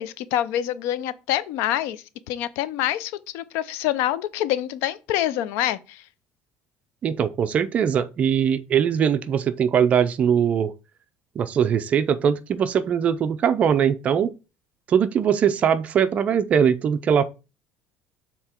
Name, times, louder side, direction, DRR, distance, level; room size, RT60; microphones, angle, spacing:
voice 1, 0.0-6.0, left 12 dB, 75° left, 0.5 m, -26 dB
voice 2, 7.0-10.7 11.4-14.3 14.9-17.3, right 8 dB, 30° right, 0.5 m, -21 dB
6.8 x 3.8 x 4.4 m
cardioid pair, 160°, 4 cm